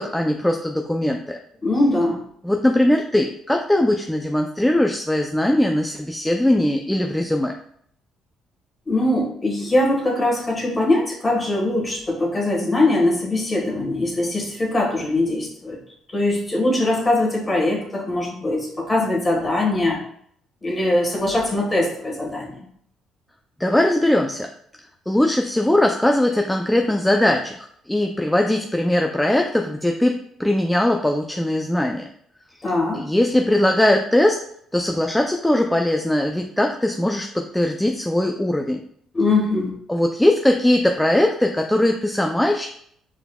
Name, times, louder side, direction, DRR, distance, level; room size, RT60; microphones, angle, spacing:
voice 1, 0.0-1.4 2.4-7.5 23.6-24.5 25.1-32.1 32.9-34.4 34.7-38.8 39.9-42.7, left 1 dB, 5° left, 3 dB, 0.3 m, -20 dB
voice 2, 1.6-2.2 8.9-15.8 16.1-20.0 20.6-22.6 32.6-33.1 39.1-39.7, left 2 dB, 25° left, -1 dB, 1.4 m, -21 dB
4.6 x 3.5 x 2.2 m, 0.66 s
supercardioid pair, 80°, 0 cm